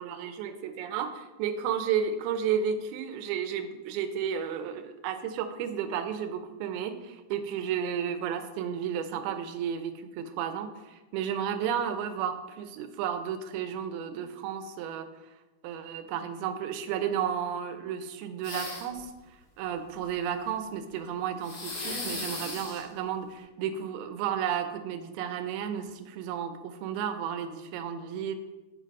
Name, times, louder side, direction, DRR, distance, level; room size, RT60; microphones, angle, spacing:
voice 1, 0.0-15.1 15.6-19.1 19.6-28.4, right 8 dB, 85° right, 9 dB, 2.6 m, -32 dB
sound 1, 18.4-19.0 21.4-22.8, left 2 dB, 50° left, 3.6 m, -36 dB
7.6 x 5.9 x 5.3 m, 1.1 s
omnidirectional pair, 4.3 m